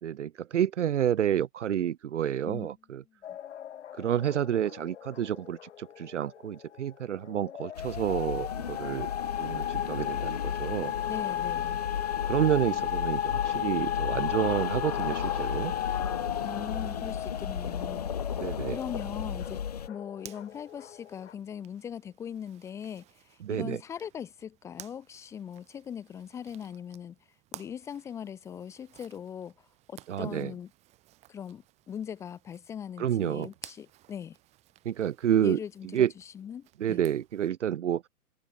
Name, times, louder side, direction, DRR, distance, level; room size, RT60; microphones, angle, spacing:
voice 1, 0.0-3.0 4.0-9.1 9.4-10.9 12.3-15.7 18.4-18.8 23.4-23.8 30.1-30.5 33.0-33.5 34.8-35.6 35.9-36.1 36.8-38.0, right 10 dB, 55° right, 0.8 m, -29 dB
sound 1, 3.2-21.3, left 10 dB, 50° left, 2.2 m, -35 dB
sound 2, 7.8-19.9, left 8 dB, 30° left, 0.5 m, -35 dB
voice 2, 11.1-11.8 16.4-18.1 18.4-19.6 19.9-27.2 27.5-30.7 31.3-34.4 35.4-36.1 36.3-37.0, left 8 dB, 5° left, 1.1 m, -40 dB
Zipper (clothing), 20.2-37.5, right 15 dB, 15° right, 2.5 m, -55 dB
hypercardioid pair, 165°, 44 cm